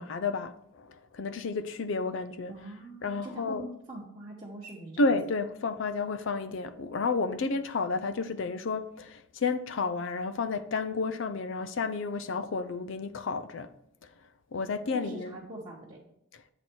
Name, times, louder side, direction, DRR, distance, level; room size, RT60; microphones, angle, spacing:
voice 1, 0.0-2.5 3.0-3.6 5.0-13.7 14.5-15.3 16.3-16.4, left 4 dB, 60° left, 0.4 m, -31 dB
voice 2, 2.5-5.0 14.9-16.0, right 2 dB, 25° right, 1.1 m, -43 dB
7.9 x 4.2 x 4.5 m
head